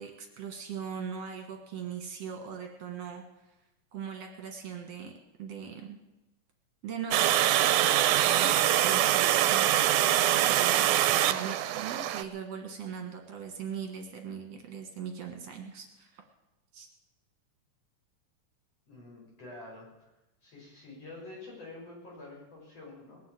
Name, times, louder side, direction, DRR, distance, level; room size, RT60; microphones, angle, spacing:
voice 1, 0.0-3.2 3.9-5.1 5.4-6.0 6.8-16.2 16.7-16.9, right 7 dB, 60° right, 3 dB, 2.6 m, -40 dB
Water, 7.1-12.2, right 12 dB, 80° right, 2.2 m, -24 dB
voice 2, 18.9-20.1 20.4-23.2, left 2 dB, 55° left, -4 dB, 7.2 m, -47 dB
20.0 x 7.6 x 8.8 m, 0.99 s
omnidirectional pair, 3.4 m